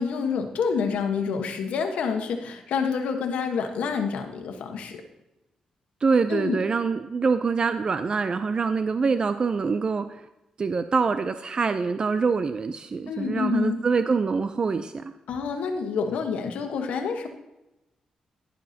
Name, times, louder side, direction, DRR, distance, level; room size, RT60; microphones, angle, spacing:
voice 1, 0.0-5.0 6.3-6.6 13.1-13.8 15.3-17.3, left 6 dB, 85° left, 5 dB, 1.2 m, -28 dB
voice 2, 6.0-10.2 10.6-15.1, right 4 dB, 40° right, 10 dB, 0.5 m, -25 dB
11.5 x 11.0 x 2.8 m, 0.94 s
cardioid pair, 90°, 2 cm